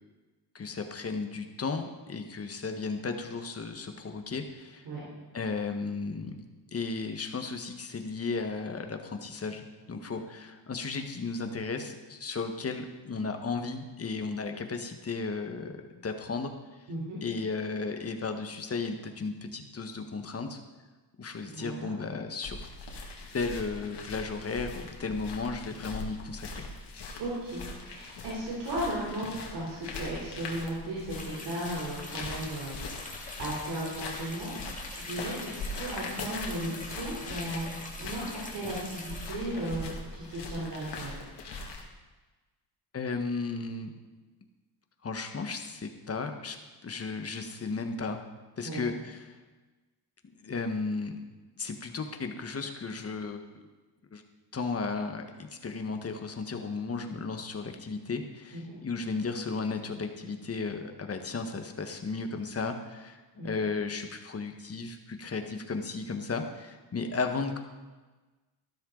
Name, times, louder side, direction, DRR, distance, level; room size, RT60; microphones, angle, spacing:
voice 1, 0.5-4.8 5.3-6.4 6.7-15.7 16.0-16.5 17.2-20.6 21.2-22.7 23.3-26.7 42.9-43.9 45.0-46.6 46.8-48.2 48.6-49.4 50.3-51.2 51.6-53.4 54.1-54.2 54.5-67.6, left 4 dB, 35° left, 5 dB, 1.5 m, -34 dB
voice 2, 16.9-17.2 21.5-21.9 27.2-37.7 38.0-41.1 48.6-48.8 58.5-58.8 63.4-63.5, right 1 dB, 90° right, -6 dB, 3.7 m, -36 dB
sound 1, 22.4-41.8, left 3 dB, 80° left, 2.4 m, -41 dB
sound 2, 31.1-39.3, left 2 dB, 20° left, 2.2 m, -44 dB
13.5 x 12.5 x 4.0 m, 1.2 s
cardioid pair, 100°, 41 cm